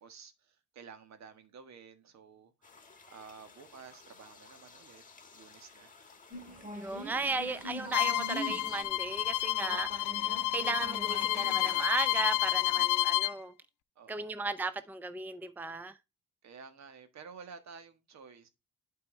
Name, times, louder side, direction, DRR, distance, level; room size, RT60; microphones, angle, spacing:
voice 1, 0.0-2.7 3.1-5.0 5.3-6.2 13.9-14.3 16.4-18.5, right 6 dB, 65° right, 1.5 m, -52 dB
sound 1, 2.6-8.8, left 4 dB, 25° left, 1.6 m, -55 dB
sound 2, 6.3-12.8, right 1 dB, 25° right, 2.2 m, -45 dB
voice 2, 6.7-13.5 14.1-16.0, right 3 dB, 5° right, 0.6 m, -36 dB
Bowed string instrument, 7.9-13.3, left 16 dB, 85° left, 0.6 m, -30 dB
8.5 x 4.6 x 4.3 m
cardioid pair, 90°, 30 cm